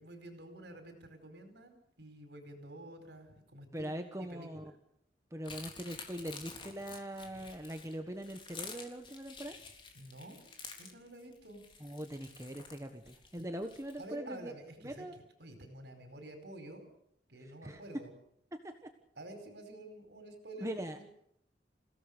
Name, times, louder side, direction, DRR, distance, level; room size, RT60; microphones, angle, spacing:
voice 1, 0.0-3.9 4.3-4.7 7.3-7.4 9.9-10.4 10.8-11.6 14.0-16.8 17.3-18.1 19.2-21.0, right 1 dB, 75° right, 7 dB, 4.8 m, -49 dB
voice 2, 3.7-4.6 5.3-9.5 11.8-14.5 14.8-15.2 17.6-17.8 18.5-18.9 20.6-21.0, right 1 dB, 15° right, 5 dB, 1.4 m, -42 dB
sound 1, 5.4-14.0, left 5 dB, 30° left, 3.6 m, -50 dB
28.0 x 17.0 x 6.8 m, 0.74 s
head